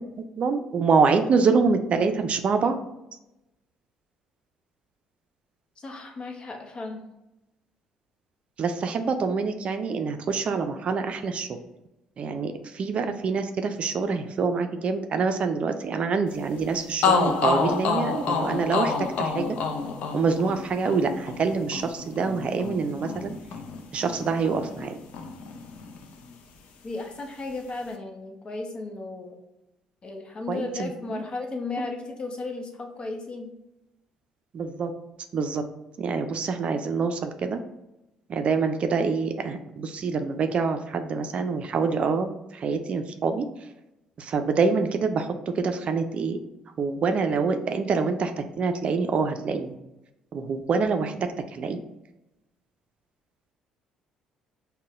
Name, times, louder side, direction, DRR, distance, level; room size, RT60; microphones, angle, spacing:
voice 1, 0.4-2.8 8.6-11.5 12.2-19.6 20.1-23.3 23.9-24.9 30.5-31.2 31.8-31.9 34.5-34.9 35.3-35.6 36.0-37.6 38.3-42.3 42.6-43.5 44.2-46.4 46.8-49.7 50.3-51.1 51.5-51.8, right 4 dB, 50° right, 7 dB, 0.4 m, -26 dB
voice 2, 5.8-7.0 26.8-29.4 30.0-33.5, left 3 dB, 40° left, 3 dB, 0.8 m, -35 dB
sound 1, 16.6-16.7 17.0-24.9 25.1-26.3, left 5 dB, 65° left, 0.5 m, -28 dB
5.4 x 2.1 x 2.5 m, 0.92 s
hypercardioid pair, 55°, 3 cm